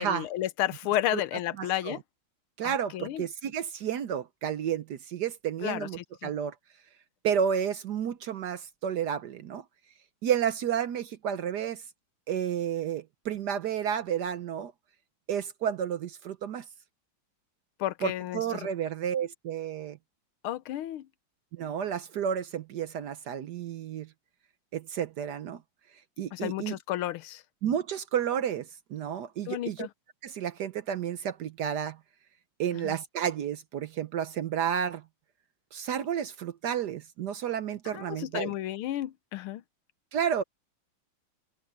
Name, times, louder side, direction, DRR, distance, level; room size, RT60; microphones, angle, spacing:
voice 1, 0.0-2.0 2.6-3.2 5.6-5.9 6.2-6.3 17.8-18.7 20.4-21.1 26.3-27.4 29.5-29.9 32.8-32.9 37.9-39.6, left 13 dB, 90° left, 1.6 m, -32 dB
voice 2, 1.6-2.0 2.6-6.5 7.2-9.6 10.2-11.8 12.3-14.7 15.3-16.6 18.0-20.0 21.5-24.1 24.7-25.6 26.2-26.8 27.6-29.9 30.2-32.0 32.6-35.0 35.7-38.5 40.1-40.4, right 8 dB, 65° right, 1.1 m, -31 dB
omnidirectional pair, 2.3 m